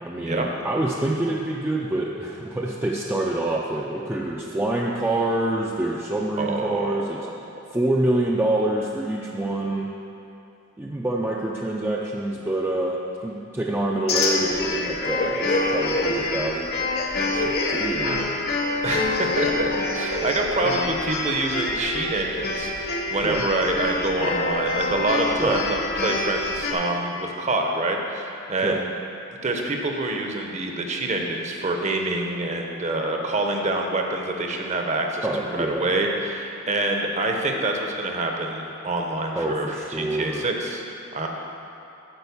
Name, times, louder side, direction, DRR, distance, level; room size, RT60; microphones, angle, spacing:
voice 1, 0.0-7.2 7.7-9.9 10.8-16.7 17.3-18.3 23.2-23.4 25.4-25.6 28.6-28.8 35.2-35.9 39.4-40.5, right 1 dB, 10° right, -3 dB, 0.4 m, -26 dB
voice 2, 6.4-7.3 17.3-17.4 18.0-18.2 18.8-28.9 29.4-40.8 41.1-41.3, right 2 dB, 35° right, 2 dB, 0.8 m, -26 dB
sound 1, 14.1-26.7, left 2 dB, 50° left, 0.9 m, -26 dB
9.0 x 4.4 x 7.0 m, 2.7 s
head